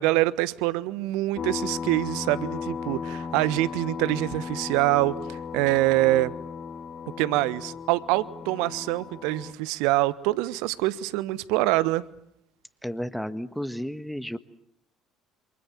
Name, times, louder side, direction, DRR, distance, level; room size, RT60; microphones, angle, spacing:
voice 1, 0.0-6.3 7.2-12.0, right 17 dB, 65° right, 1.2 m, -25 dB
sound 1, 1.3-9.5, left 6 dB, 45° left, 3.1 m, -35 dB
voice 2, 12.8-14.4, equal, ahead, 1.6 m, -32 dB
29.0 x 27.0 x 7.4 m
figure-of-eight pair, 55°, 0 cm